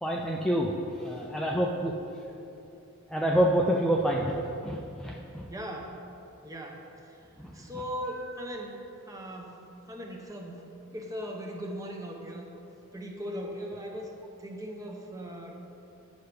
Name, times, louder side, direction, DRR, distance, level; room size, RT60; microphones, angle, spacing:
voice 1, 0.0-0.7 1.0-1.9 3.1-4.4 4.6-5.4 7.4-7.5 8.2-8.3, right 1 dB, 5° left, -3 dB, 0.4 m, -27 dB
voice 2, 5.5-6.0 6.4-7.2 7.5-10.7 10.9-12.5 12.9-14.1 14.4-15.5, equal, 15° right, 1 dB, 0.8 m, -39 dB
9.5 x 6.9 x 3.3 m, 2.9 s
head